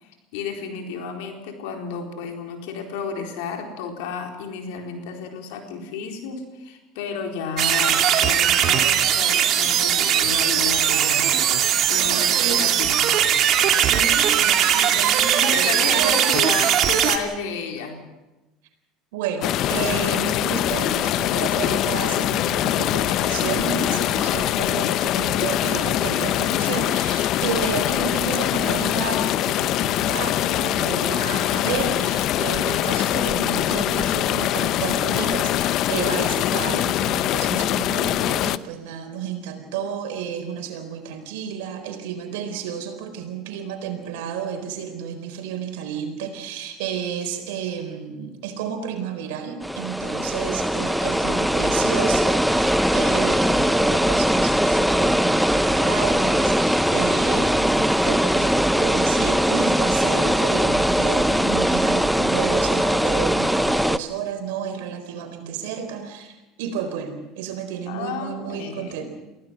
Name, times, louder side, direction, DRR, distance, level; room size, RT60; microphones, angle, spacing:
voice 1, 0.0-11.3 11.9-13.0 15.4-18.0 51.0-51.6 67.9-69.1, left 6 dB, 80° left, 3 dB, 4.2 m, -32 dB
sound 1, 7.6-17.2, right 9 dB, 55° right, 2.4 m, -19 dB
voice 2, 11.9-12.7 13.7-16.2 19.1-69.1, right 7 dB, 80° right, 5 dB, 4.2 m, -31 dB
sound 2, 19.4-38.6, left 13 dB, 60° left, 0.7 m, -23 dB
sound 3, 49.6-64.0, equal, ahead, 0.8 m, -20 dB
23.0 x 16.5 x 7.7 m, 1.1 s
supercardioid pair, 100°, 0 cm